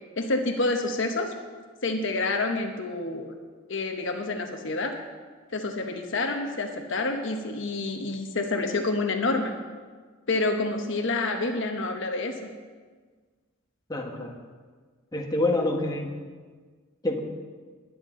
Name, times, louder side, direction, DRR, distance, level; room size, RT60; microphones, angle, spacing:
voice 1, 0.2-1.3 1.8-3.3 3.7-5.0 5.5-9.5 10.3-12.4, left 2 dB, 65° left, 4 dB, 1.1 m, -28 dB
voice 2, 13.9-14.4 15.1-16.1 17.0-17.2, left 2 dB, 20° left, 0 dB, 1.4 m, -27 dB
20.0 x 9.8 x 3.8 m, 1.5 s
head